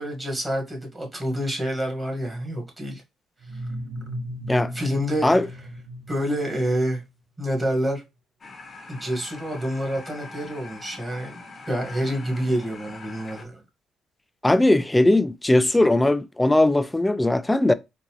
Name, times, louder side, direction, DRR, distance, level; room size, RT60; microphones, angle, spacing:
voice 1, 0.0-3.0 4.7-5.3 6.1-7.0 7.4-8.0 8.9-11.4 11.7-13.6, equal, 20° right, 1.6 m, -27 dB
sound 1, 3.4-7.1, equal, 80° right, 1.0 m, -36 dB
sound 2, 8.4-13.5, left 3 dB, 40° left, 0.9 m, -43 dB
voice 2, 14.4-17.7, left 1 dB, 10° left, 0.3 m, -19 dB
4.0 x 2.6 x 2.9 m
cardioid pair, 90°, 0 cm